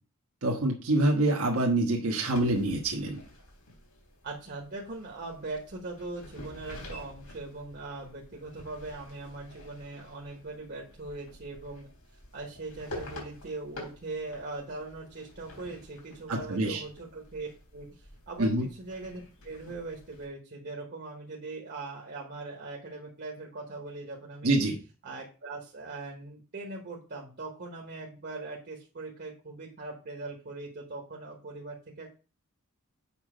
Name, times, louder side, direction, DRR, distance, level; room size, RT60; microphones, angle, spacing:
voice 1, 0.4-3.2 16.3-16.8 18.4-18.6 24.4-24.8, right 1 dB, 75° right, 0 dB, 1.4 m, -26 dB
sound 1, 2.3-20.3, left 1 dB, 85° left, 3.8 m, -49 dB
voice 2, 4.2-11.9 12.3-17.9 18.3-24.6 25.0-32.1, right 3 dB, 50° right, 0 dB, 1.3 m, -40 dB
7.3 x 5.4 x 5.0 m, 0.35 s
head